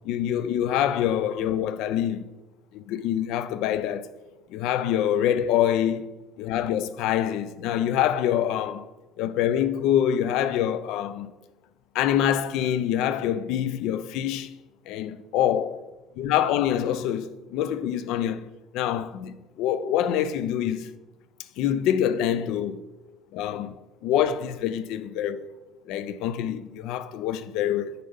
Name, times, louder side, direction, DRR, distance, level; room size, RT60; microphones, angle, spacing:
voice 1, 0.0-2.2 2.7-4.1 4.5-6.1 6.4-8.9 9.2-11.3 11.9-14.5 14.9-15.8 16.2-18.5 18.7-20.9 21.6-22.8 23.3-23.7 24.0-25.5 25.9-27.9, left 10 dB, 75° left, 0.3 m, -25 dB
5.3 x 3.9 x 5.0 m
supercardioid pair, 85°, 0 cm